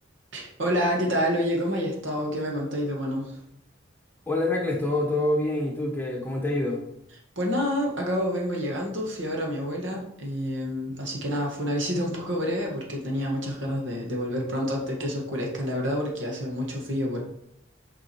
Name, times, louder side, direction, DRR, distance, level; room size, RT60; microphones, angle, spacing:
voice 1, 0.3-3.4 7.4-17.2, equal, 65° right, -1 dB, 2.0 m, -28 dB
voice 2, 4.3-6.8, left 2 dB, 10° left, 0 dB, 1.2 m, -26 dB
7.4 x 5.3 x 4.8 m, 0.77 s
head